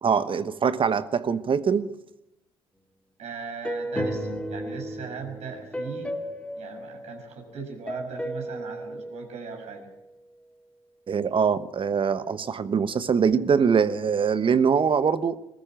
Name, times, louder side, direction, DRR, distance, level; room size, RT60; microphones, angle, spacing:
voice 1, 0.0-1.9 11.1-15.4, right 6 dB, 40° right, 1.2 m, -23 dB
voice 2, 3.2-6.2 6.5-9.9, right 5 dB, 60° right, 6.2 m, -38 dB
sound 1, 3.6-7.5 7.9-9.9, equal, 10° left, 3.4 m, -34 dB
21.5 x 14.0 x 8.9 m
hypercardioid pair, 50°, 13 cm